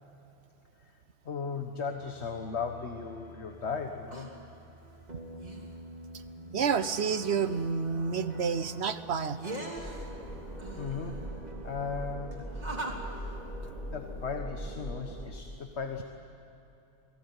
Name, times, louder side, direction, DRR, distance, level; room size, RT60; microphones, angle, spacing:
voice 1, 1.2-4.3 10.8-11.2 11.6-12.5 13.9-16.0, left 5 dB, 65° left, 5 dB, 1.6 m, -36 dB
sound 1, 1.8-13.7, right 1 dB, 35° right, 3.1 m, -44 dB
voice 2, 6.5-9.4, right 6 dB, 65° right, 13 dB, 1.1 m, -29 dB
sound 2, 9.8-15.2, equal, 35° left, 5.5 m, -40 dB
28.0 x 19.5 x 9.7 m, 3.0 s
omnidirectional pair, 1.2 m